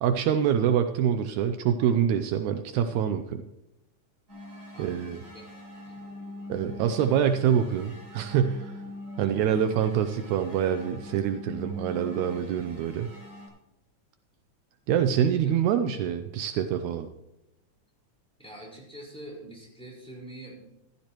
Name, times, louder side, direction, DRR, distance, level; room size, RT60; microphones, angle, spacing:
voice 1, 0.0-3.4 4.8-5.2 6.5-8.7 9.2-13.1 14.9-17.1, right 9 dB, 80° right, 8 dB, 2.0 m, -25 dB
sound 1, 4.3-13.5, left 1 dB, 40° right, 5.4 m, -43 dB
voice 2, 4.7-5.4 5.8-6.0 9.2-9.4 15.3-15.5 18.4-20.6, right 1 dB, ahead, -4 dB, 4.3 m, -45 dB
15.0 x 13.5 x 3.0 m, 0.89 s
omnidirectional pair, 3.5 m